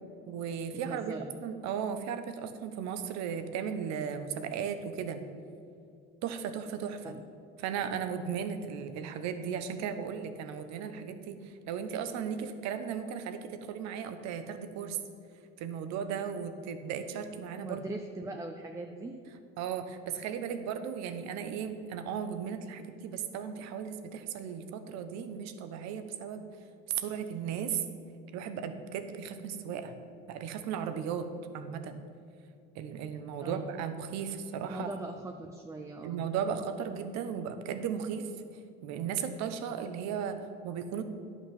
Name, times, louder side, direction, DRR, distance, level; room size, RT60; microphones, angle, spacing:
voice 1, 0.3-5.2 6.2-7.1 7.6-15.0 15.6-17.8 19.6-26.5 26.9-27.8 28.3-30.0 30.3-31.3 31.5-32.0 32.7-34.9 36.0-38.3 38.8-41.0, right 7 dB, 70° right, 9 dB, 0.9 m, -36 dB
voice 2, 0.9-1.3 7.0-7.2 17.7-19.2 33.4-33.7 34.7-36.2, right 2 dB, 10° right, 4 dB, 0.6 m, -40 dB
10.5 x 6.1 x 5.9 m, 2.5 s
supercardioid pair, 95°, 29 cm